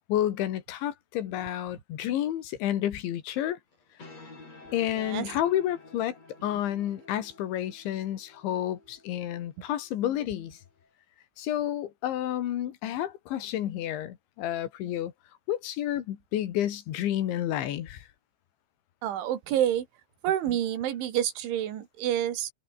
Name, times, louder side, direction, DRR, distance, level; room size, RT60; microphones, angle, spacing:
voice 1, 0.1-3.6 4.7-6.2 6.4-10.6 11.4-15.1 15.5-18.1, left 12 dB, 80° left, 4.3 m, -30 dB
sound 1, 3.7-10.9, left 3 dB, 35° left, 9.1 m, -52 dB
voice 2, 5.0-5.3 19.0-19.9 20.2-22.5, right 11 dB, 85° right, 4.7 m, -28 dB
omnidirectional pair, 5.3 m